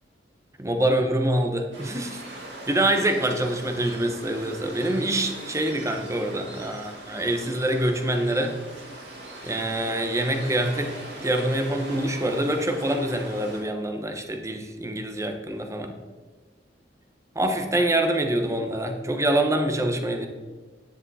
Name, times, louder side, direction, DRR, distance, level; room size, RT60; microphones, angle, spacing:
voice 1, 0.6-2.2 2.7-8.6 9.4-10.9 11.2-16.0 17.3-20.3, right 1 dB, 15° right, 5 dB, 1.0 m, -25 dB
Waves surf, 1.7-13.6, right 1 dB, 90° right, 3.9 m, -41 dB
10.0 x 9.7 x 4.2 m, 1.3 s
head